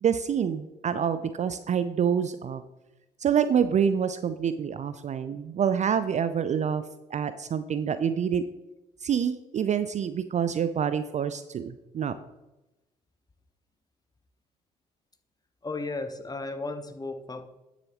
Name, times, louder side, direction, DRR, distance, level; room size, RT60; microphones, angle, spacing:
voice 1, 0.0-2.6 3.2-6.8 7.1-8.4 9.0-12.1, right 8 dB, 35° right, 12 dB, 0.4 m, -27 dB
voice 2, 15.6-17.4, left 3 dB, 20° left, 8 dB, 0.9 m, -34 dB
9.6 x 7.0 x 3.0 m, 0.99 s
figure-of-eight pair, 50°, 21 cm